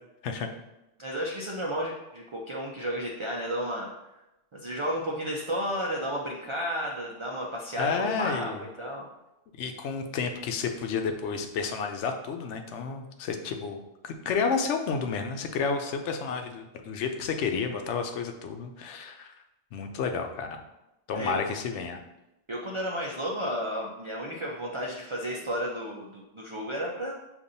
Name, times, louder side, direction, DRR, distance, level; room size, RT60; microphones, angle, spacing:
voice 1, 1.0-3.9 4.5-8.5 8.8-9.1 21.1-21.4 22.5-27.1, equal, 40° right, -2 dB, 0.4 m, -32 dB
voice 2, 7.8-8.7 9.6-19.3 19.7-20.6 21.1-22.0, left 5 dB, 80° left, 5 dB, 0.9 m, -31 dB
6.9 x 2.6 x 2.6 m, 0.93 s
omnidirectional pair, 1.2 m